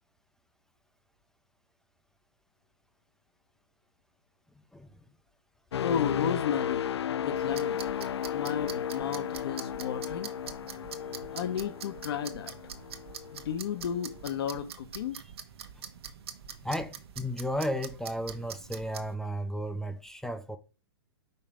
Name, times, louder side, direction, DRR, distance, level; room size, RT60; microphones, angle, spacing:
sound 1, 5.7-13.5 14.0-14.2, left 9 dB, 85° left, 0.4 m, -34 dB
voice 1, 5.8-6.9 7.2-7.9 8.3-10.3 11.3-12.5 13.3-15.2, left 8 dB, 65° left, 1.0 m, -33 dB
sound 2, 7.4-19.1, right 7 dB, 70° right, 1.1 m, -45 dB
voice 2, 16.6-20.6, equal, 5° left, 0.5 m, -34 dB
5.6 x 4.1 x 4.9 m
hypercardioid pair, 130°, 14 cm